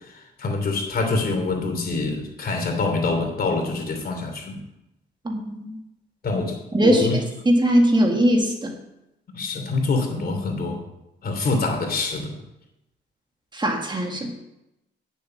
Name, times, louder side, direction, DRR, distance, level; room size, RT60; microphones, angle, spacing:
voice 1, 0.4-4.6 6.2-7.2 9.3-10.8 11.2-12.4, left 3 dB, 50° left, 3 dB, 2.9 m, -25 dB
voice 2, 5.3-5.8 6.7-7.1 7.5-8.8 13.5-14.3, equal, 25° right, 2 dB, 1.7 m, -20 dB
9.6 x 7.0 x 6.5 m, 0.90 s
cardioid pair, 90°, 20 cm